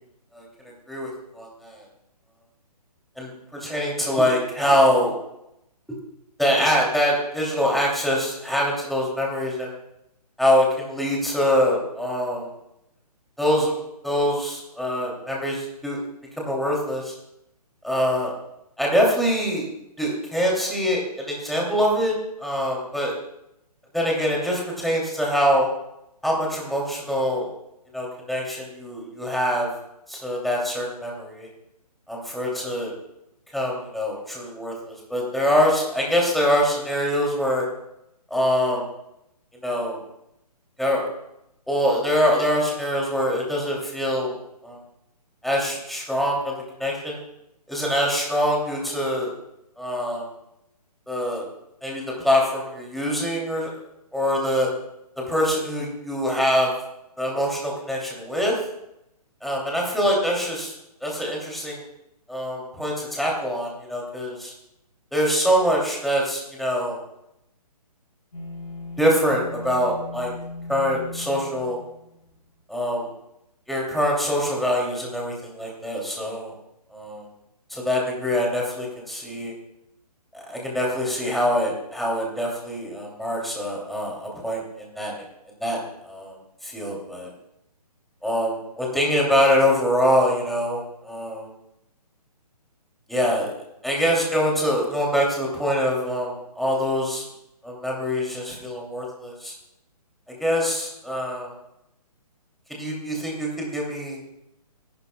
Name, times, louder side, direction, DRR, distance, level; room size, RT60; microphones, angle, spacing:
voice 1, 1.3-1.8 3.2-3.3 3.6-5.1 6.4-9.7 10.4-12.5 13.4-13.7 14.0-16.0 16.4-17.1 17.8-18.3 18.8-19.6 20.0-23.1 23.9-25.7 26.2-27.5 27.9-29.7 30.1-31.5 32.1-32.9 33.5-34.7 35.1-37.6 38.3-38.8 39.6-40.0 40.8-41.1 41.7-44.3 44.6-44.8 45.4-46.5 46.8-47.2 47.7-49.3 49.8-50.2 51.1-51.4 51.8-53.7 54.1-54.7 55.3-56.7 57.2-58.5 59.4-60.7 61.0-61.8 62.3-64.5 65.1-67.0 69.0-70.3 70.7-71.8 72.7-73.1 73.7-76.5 76.9-77.3 77.7-79.5 80.5-85.1 85.6-85.8 86.0-86.3 86.6-87.3 88.2-91.5 93.1-93.5 93.8-97.2 97.6-99.5 100.4-101.5 102.8-104.3, equal, ahead, -3 dB, 2.9 m, -24 dB
sound 1, 68.3-72.6, left 3 dB, 80° left, 5.6 m, -38 dB
26.0 x 12.0 x 2.3 m, 0.83 s
figure-of-eight pair, 140°, 20 cm